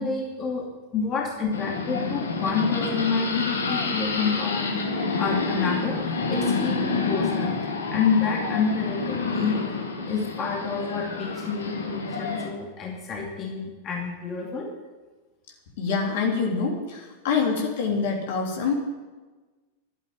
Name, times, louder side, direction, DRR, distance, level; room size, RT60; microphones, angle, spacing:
voice 1, 0.0-4.8 5.2-6.0 6.3-7.6 7.9-9.6 10.1-14.7, left 5 dB, 30° left, -1 dB, 2.5 m, -28 dB
sound 1, 1.5-12.5, left 4 dB, 70° left, 2.2 m, -28 dB
voice 2, 15.8-18.7, left 5 dB, 55° left, 0 dB, 3.3 m, -25 dB
12.5 x 10.5 x 8.7 m, 1.3 s
figure-of-eight pair, 90°, 0 cm